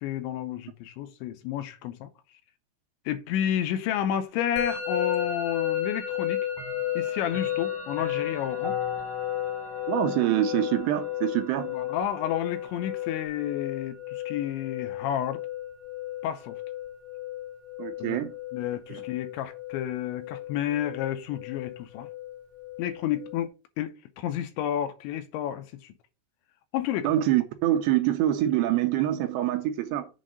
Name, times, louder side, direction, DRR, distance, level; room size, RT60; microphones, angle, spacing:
voice 1, 0.0-2.1 3.1-6.5 7.0-8.8 11.7-15.4 16.2-16.6 18.0-18.2 18.5-22.1 22.8-23.5 23.8-25.9 26.7-27.1, left 10 dB, 80° left, 2.9 m, -31 dB
Musical instrument, 4.6-23.5, left 11 dB, 65° left, 3.0 m, -34 dB
Clock, 5.1-5.2 6.5-13.3, left 3 dB, 15° right, 0.9 m, -42 dB
voice 2, 9.9-11.7 17.8-18.3 18.9-19.0 27.0-30.1, right 13 dB, 80° right, 2.7 m, -25 dB
7.2 x 4.1 x 6.2 m
omnidirectional pair, 5.4 m